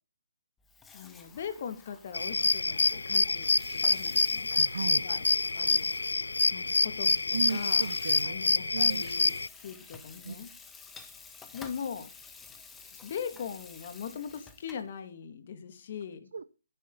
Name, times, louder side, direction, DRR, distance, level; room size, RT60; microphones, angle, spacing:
Water tap faucet / Sink (filling or washing), 0.6-14.9, left 4 dB, 10° left, 1.4 m, -52 dB
voice 1, 0.9-4.5 5.0-5.2 5.6-5.9 6.5-7.9 8.2-10.5 11.5-12.1 12.9-16.3, left 7 dB, 45° left, 8 dB, 2.4 m, -40 dB
sound 1, 2.1-9.5, left 3 dB, 80° left, 0.5 m, -27 dB
voice 2, 4.5-5.0 7.3-8.4 8.7-9.0 10.2-10.5 16.3-16.4, right 5 dB, 65° right, 14 dB, 0.7 m, -35 dB
10.5 x 10.0 x 4.1 m, 0.32 s
figure-of-eight pair, 145°, 0 cm